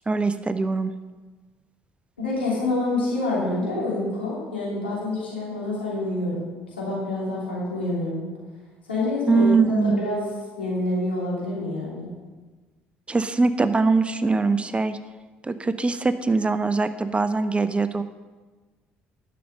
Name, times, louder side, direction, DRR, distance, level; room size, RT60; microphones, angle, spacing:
voice 1, 0.1-0.9 9.3-10.0 13.1-15.0 15.4-18.0, right 4 dB, 20° right, 11 dB, 0.6 m, -22 dB
voice 2, 2.2-8.3 8.9-10.2 10.5-12.1, left 2 dB, 90° left, -6 dB, 2.9 m, -27 dB
11.0 x 6.5 x 5.4 m, 1.3 s
hypercardioid pair, 55°, 6 cm